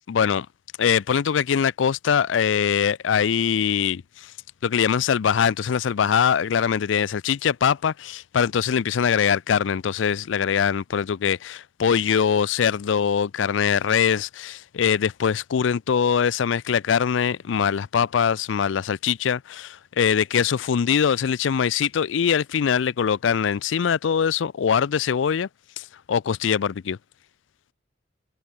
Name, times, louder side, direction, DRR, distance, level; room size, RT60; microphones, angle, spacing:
voice 1, 0.1-0.5 0.8-4.3 4.6-7.9 8.3-25.5 25.8-27.0, left 7 dB, 80° left, 0.4 m, -22 dB
head